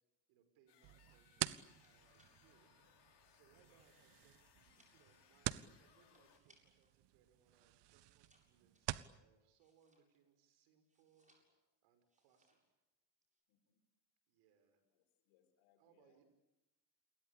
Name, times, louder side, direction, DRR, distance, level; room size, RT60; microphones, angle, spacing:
voice 1, 0.3-11.3 11.8-12.6 14.3-14.8 15.8-16.2, right 7 dB, 80° right, 9 dB, 5.9 m, -74 dB
sound 1, 0.7-6.4, left 8 dB, 60° left, 6.1 m, -70 dB
sound 2, 0.8-9.2, right 16 dB, 65° right, 1.0 m, -48 dB
sound 3, 1.6-7.0 7.3-10.4 10.8-11.7 12.1-12.7 13.0-13.4, right 1 dB, 15° right, 7.8 m, -77 dB
voice 2, 13.5-13.8 14.9-16.2, left 9 dB, 85° left, 8 dB, 5.1 m, -77 dB
28.5 x 22.0 x 8.6 m, 0.93 s
supercardioid pair, 90°, 47 cm